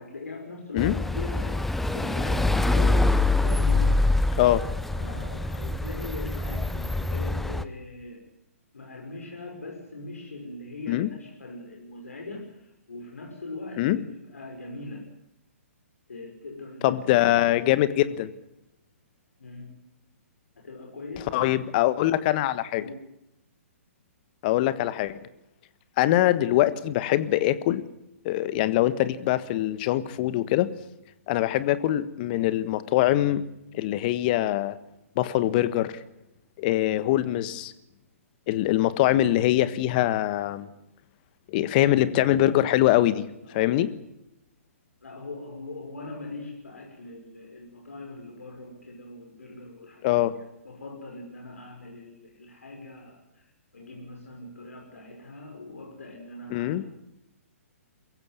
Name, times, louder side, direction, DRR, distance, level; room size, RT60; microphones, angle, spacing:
voice 1, 0.0-1.6 1.9-4.0 5.0-8.2 8.7-15.1 16.1-17.6 19.4-19.7 20.6-21.6 22.8-23.0 43.5-43.8 45.0-50.2 50.6-56.8, left 3 dB, 75° left, 1 dB, 5.7 m, -41 dB
sound 1, 0.8-7.6, left 2 dB, 5° left, 0.8 m, -25 dB
voice 2, 16.8-18.3 21.3-22.8 24.4-25.1 26.0-27.8 28.2-30.7 31.3-33.4 33.7-34.7 35.2-36.0 36.6-37.7 38.5-40.7 41.5-43.3 43.5-43.9 50.0-50.3 56.5-56.8, left 14 dB, 35° left, 15 dB, 1.4 m, -23 dB
23.0 x 15.5 x 9.4 m, 0.85 s
figure-of-eight pair, 125°, 8 cm